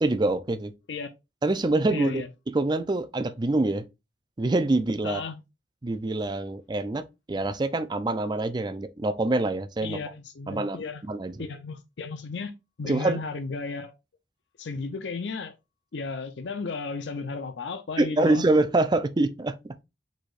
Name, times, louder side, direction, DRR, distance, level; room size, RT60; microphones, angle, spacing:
voice 1, 0.0-0.7 1.4-2.2 2.5-3.9 4.4-5.2 5.8-10.0 10.5-11.3 12.8-13.2 18.0-19.8, right 2 dB, 25° right, 0.4 m, -25 dB
voice 2, 1.9-2.3 5.0-5.4 9.8-11.0 11.4-13.9 14.6-15.5 15.9-18.4, left 4 dB, 75° left, 0.5 m, -34 dB
4.8 x 4.2 x 2.4 m
head